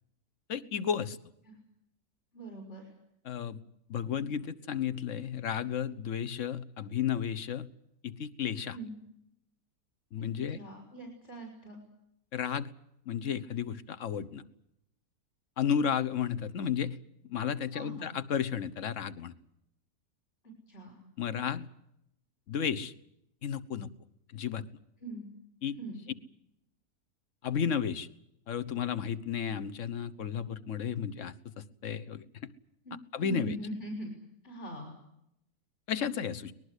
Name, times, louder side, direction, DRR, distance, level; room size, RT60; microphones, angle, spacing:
voice 1, 0.5-1.2 3.2-3.6 3.9-7.7 8.0-8.8 10.1-10.6 12.3-12.7 13.1-14.4 15.6-17.0 17.3-19.3 21.2-21.7 22.5-22.9 23.4-23.9 24.3-24.6 25.6-25.7 27.4-28.1 28.5-32.2 33.1-33.5 35.9-36.5, left 8 dB, 55° left, 15 dB, 1.4 m, -33 dB
voice 2, 2.3-2.9 8.7-8.9 10.5-11.8 17.7-18.1 20.7-21.0 25.0-25.3 25.8-26.0 32.8-34.1 34.4-34.9, right 1 dB, 40° left, 2 dB, 6.1 m, -42 dB
23.5 x 20.5 x 8.2 m, 0.80 s
omnidirectional pair, 1.7 m